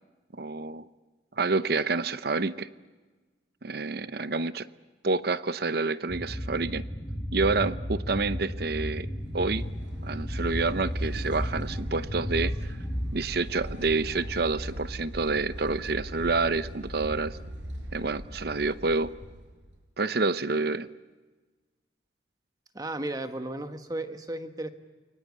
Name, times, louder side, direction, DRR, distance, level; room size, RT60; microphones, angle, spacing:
voice 1, 0.4-0.9 1.4-2.7 3.6-4.7 5.0-6.8 7.3-9.1 9.3-9.6 10.0-12.8 13.1-17.4 17.9-19.1 20.0-20.9, right 3 dB, 55° right, 14 dB, 0.8 m, -28 dB
sound 1, 6.1-13.1, equal, 10° left, 7.3 m, -33 dB
sound 2, 8.9-19.8, equal, 85° right, 5.9 m, -40 dB
voice 2, 22.7-24.7, right 1 dB, 20° right, 7 dB, 1.4 m, -34 dB
29.0 x 24.0 x 8.4 m, 1.3 s
head